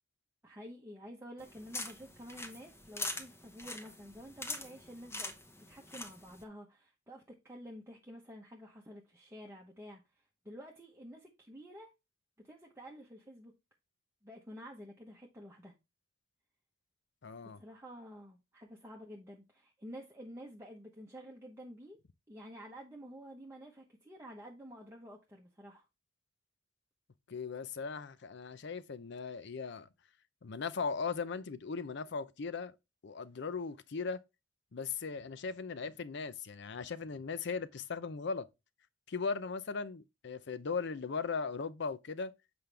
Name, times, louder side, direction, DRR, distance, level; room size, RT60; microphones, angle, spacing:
voice 1, 0.4-5.4 5.7-11.9 12.4-13.5 14.2-15.7 17.4-22.0 22.3-25.8, equal, 15° right, 1.0 m, -50 dB
sound 1, 1.4-6.4, left 2 dB, 15° left, 0.9 m, -44 dB
voice 2, 17.2-17.6 27.3-29.9 30.4-32.7 33.0-34.2 34.7-38.5 39.1-42.3, left 5 dB, 60° left, 0.6 m, -38 dB
7.9 x 5.2 x 3.4 m
head